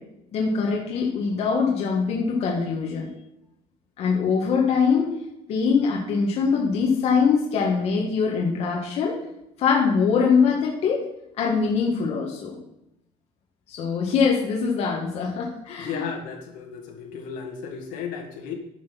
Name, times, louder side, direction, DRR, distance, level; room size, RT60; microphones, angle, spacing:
voice 1, 0.3-3.1 4.0-5.1 5.5-9.2 9.6-11.0 11.4-12.5 13.7-16.0, left 5 dB, 45° left, -1 dB, 1.6 m, -23 dB
voice 2, 15.8-18.5, left 6 dB, 75° left, 2 dB, 2.1 m, -34 dB
10.0 x 6.2 x 5.9 m, 0.85 s
cardioid pair, 180°, 14 cm